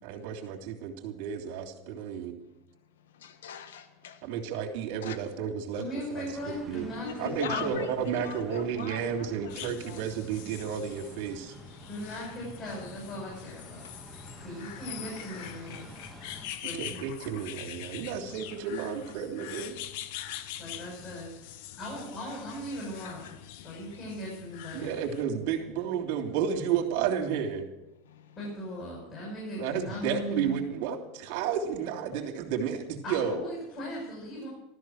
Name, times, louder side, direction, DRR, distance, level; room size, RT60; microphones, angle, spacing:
voice 1, 0.0-2.3 4.2-5.8 6.1-6.3 6.7-6.8 7.2-11.5 15.0-15.1 16.8-19.8 24.7-27.6 29.6-33.4, right 8 dB, 65° right, 1 dB, 3.1 m, -32 dB
voice 2, 3.0-4.3 5.0-5.2 7.0-10.1 23.0-23.4 28.0-28.4, left 7 dB, 85° left, 10 dB, 1.3 m, -40 dB
voice 3, 5.8-7.8 11.8-13.9 14.4-16.3 16.6-17.0 20.6-21.3 21.8-23.3 23.6-25.0 28.4-30.6 33.0-34.5, equal, 35° left, -4 dB, 7.3 m, -38 dB
sound 1, 6.3-16.5, right 2 dB, 15° right, 2.1 m, -49 dB
sound 2, 9.5-25.2, left 12 dB, 70° left, 1.1 m, -44 dB
14.0 x 13.5 x 6.4 m, 0.93 s
hypercardioid pair, 105°, 0 cm